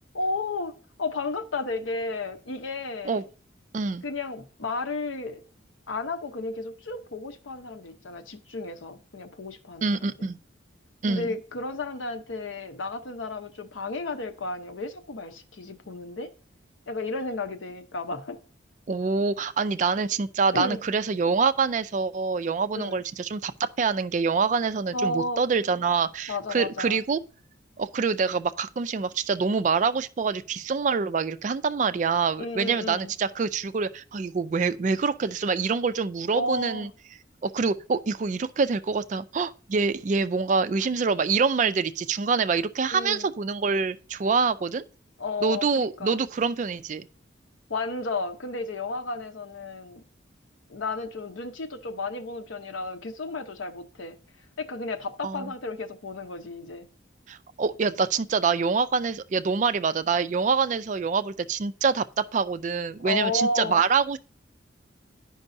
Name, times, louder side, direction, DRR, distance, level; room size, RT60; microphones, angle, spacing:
voice 1, 0.1-3.2 4.0-5.4 5.9-10.1 11.1-16.3 16.9-18.4 20.5-20.8 22.7-23.0 24.9-25.4 26.3-27.0 32.4-33.1 36.3-36.9 42.9-43.3 45.2-46.2 47.7-50.0 50.7-54.2 54.6-56.9 63.0-63.8, left 2 dB, 80° left, 0.8 m, -33 dB
voice 2, 9.8-10.4 11.0-11.3 18.9-27.2 27.8-36.9 37.4-44.8 45.4-47.1 55.2-55.5 57.3-64.2, right 5 dB, 40° right, 0.3 m, -25 dB
10.5 x 5.3 x 2.6 m
head